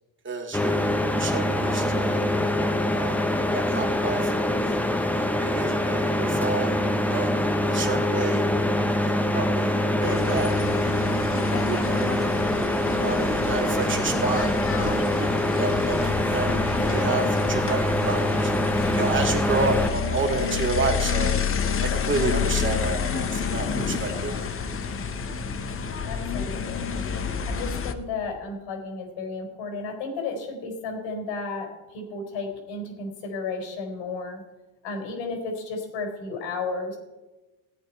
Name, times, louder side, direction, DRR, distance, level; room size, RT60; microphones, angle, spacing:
voice 1, 0.2-2.3 2.9-3.2 3.5-4.7 5.1-8.4 9.0-10.5 11.0-11.2 11.7-18.5 18.9-21.4 21.8-24.5, right 3 dB, 25° right, 2 dB, 2.7 m, -30 dB
sound 1, 0.5-19.9, left 1 dB, 5° left, 0.9 m, -24 dB
sound 2, 10.0-27.9, left 7 dB, 30° left, 1.0 m, -29 dB
voice 2, 26.1-27.0 27.4-34.4 34.8-37.0, left 3 dB, 75° left, 3 dB, 4.3 m, -33 dB
17.0 x 8.9 x 4.6 m, 1.1 s
cardioid pair, 120°, 47 cm